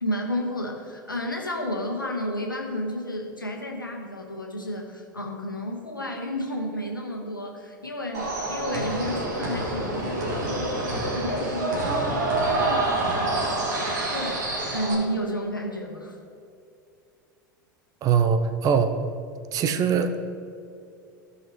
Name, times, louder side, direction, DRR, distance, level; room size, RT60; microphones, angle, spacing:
voice 1, 0.0-10.8 11.1-13.7 14.1-14.5 14.7-16.2, equal, 85° left, 1 dB, 1.3 m, -31 dB
sound 1, 8.1-14.9, right 2 dB, 60° right, 2.2 m, -27 dB
voice 2, 18.0-18.9 19.5-20.1, right 7 dB, 35° right, 8 dB, 0.6 m, -22 dB
14.5 x 5.6 x 3.0 m, 2.5 s
figure-of-eight pair, 85°, 11 cm